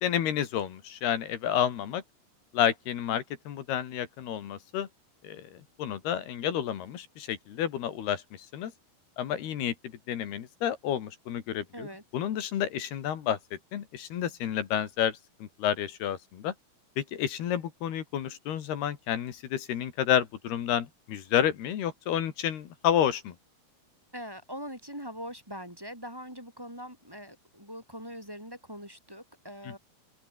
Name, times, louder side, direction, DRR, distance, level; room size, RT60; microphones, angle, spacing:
voice 1, 0.0-2.0 2.5-4.9 5.2-8.2 8.5-8.7 9.2-11.9 12.1-13.4 13.7-16.5 17.0-23.3 29.7-29.8, left 10 dB, 75° left, 4.1 m, -30 dB
voice 2, 11.7-12.0 24.1-29.8, equal, 5° right, 2.6 m, -42 dB
omnidirectional pair, 4.7 m